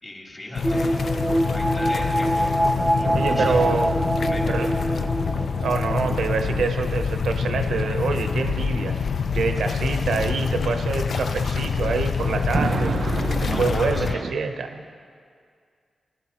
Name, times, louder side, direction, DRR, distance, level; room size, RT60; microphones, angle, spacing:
voice 1, 0.0-0.9 1.5-2.6 3.0-3.5 4.2-4.5 13.2-14.2, left 1 dB, 35° left, -3 dB, 3.1 m, -38 dB
sound 1, 0.5-14.1, left 5 dB, 70° left, 0.4 m, -26 dB
sound 2, 0.6-6.6 6.9-7.0, equal, 10° right, 0.6 m, -25 dB
sound 3, 0.9-14.3, right 5 dB, 65° right, 0.3 m, -35 dB
voice 2, 3.1-4.0 4.5-4.7 5.6-9.0 9.3-12.9 13.4-14.8, right 4 dB, 85° right, 6 dB, 0.7 m, -26 dB
16.5 x 12.0 x 3.0 m, 2.2 s
cardioid pair, 50°, 0 cm